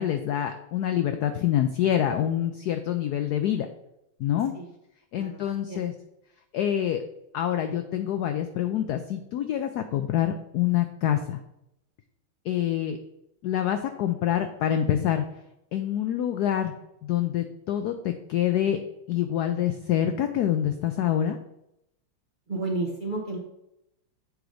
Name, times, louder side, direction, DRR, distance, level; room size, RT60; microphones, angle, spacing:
voice 1, 0.0-3.7 4.2-4.5 5.1-5.9 6.5-7.0 7.3-11.4 12.4-13.0 13.4-15.3 15.7-16.7 17.0-18.8 19.1-21.4, left 10 dB, 85° left, 8 dB, 0.8 m, -26 dB
voice 2, 5.1-5.8 22.5-23.4, right 2 dB, 40° right, -1 dB, 0.7 m, -32 dB
7.9 x 3.9 x 4.9 m, 0.84 s
omnidirectional pair, 2.2 m